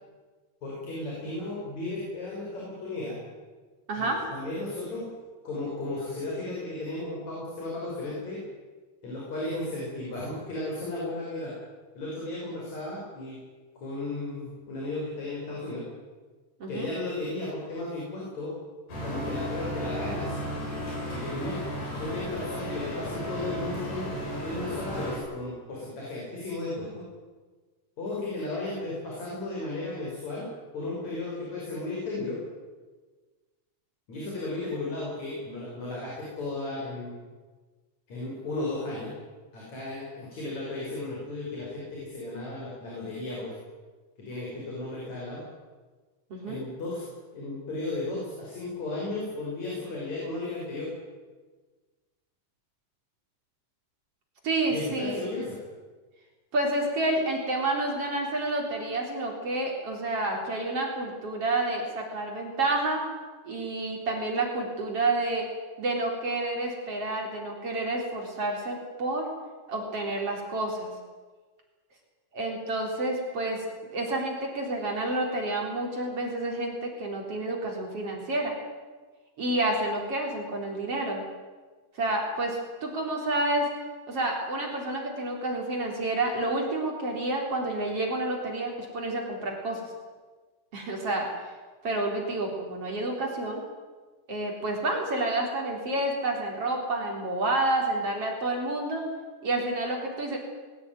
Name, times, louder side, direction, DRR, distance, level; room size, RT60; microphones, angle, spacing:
voice 1, 0.6-3.2 4.0-5.1 5.4-8.4 9.0-11.5 12.0-13.4 13.8-15.9 16.7-18.6 19.0-20.4 21.1-21.6 22.0-27.1 28.0-30.5 30.7-32.4 34.1-37.2 38.1-39.1 39.5-43.5 44.2-45.5 46.5-47.1 47.3-50.9 54.7-55.6, left 2 dB, 55° left, -4 dB, 7.1 m, -34 dB
voice 2, 3.9-4.2 16.6-16.9 46.3-46.6 54.4-55.2 56.5-63.0 63.4-65.4 65.8-69.3 69.7-70.9 72.3-73.7 73.9-78.5 79.4-81.2 82.0-83.7 84.1-89.9 90.7-91.3 91.8-93.6 94.3-99.0 99.4-100.4, right 2 dB, 45° right, 1 dB, 4.7 m, -29 dB
sound 1, 18.9-25.2, equal, 80° left, 9.0 m, -34 dB
21.0 x 17.0 x 9.5 m, 1.4 s
omnidirectional pair, 3.7 m